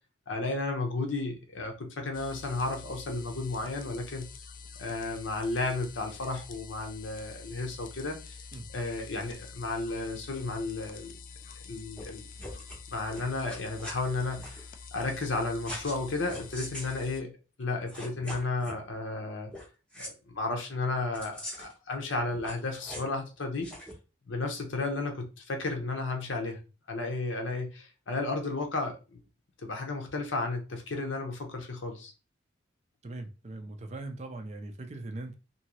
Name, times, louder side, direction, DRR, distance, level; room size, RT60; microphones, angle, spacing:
voice 1, 0.3-4.3 4.8-8.2 8.7-11.1 11.7-12.2 12.9-17.3 17.6-19.5 20.0-23.7 24.3-26.6 26.9-29.2 29.6-32.1, left 3 dB, 70° left, 0.8 m, -33 dB
sound 1, 2.1-17.2, left 5 dB, 40° left, 0.3 m, -47 dB
sound 2, 12.0-12.1 12.4-12.8 13.1-13.9 14.4-14.6 15.6-16.0 16.3-16.9 17.6-17.7 17.9-18.8 19.5-19.7 19.9-20.1 21.1-21.8 22.3-23.2 23.6-23.9, equal, 5° left, 0.7 m, -42 dB
voice 2, 33.0-35.3, right 2 dB, 35° right, 0.4 m, -40 dB
2.8 x 2.7 x 2.9 m
head